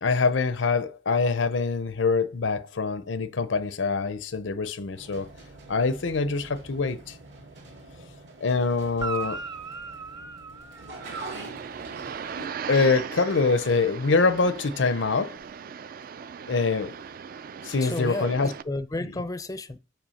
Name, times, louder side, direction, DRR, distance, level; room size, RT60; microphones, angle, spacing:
voice 1, 0.0-5.3 5.7-7.2 8.4-9.4 12.7-15.4 16.5-17.0 17.6-18.5, left 4 dB, 90° left, 0.7 m, -24 dB
sound 1, 5.0-12.5, right 2 dB, 70° right, 1.9 m, -44 dB
Guitar, 8.9-11.5 15.4-15.5, right 5 dB, 25° right, 0.7 m, -37 dB
sound 2, 11.0-18.6, right 7 dB, 50° right, 0.3 m, -38 dB
voice 2, 17.8-19.8, left 2 dB, 20° left, 0.4 m, -32 dB
6.0 x 4.5 x 5.6 m
head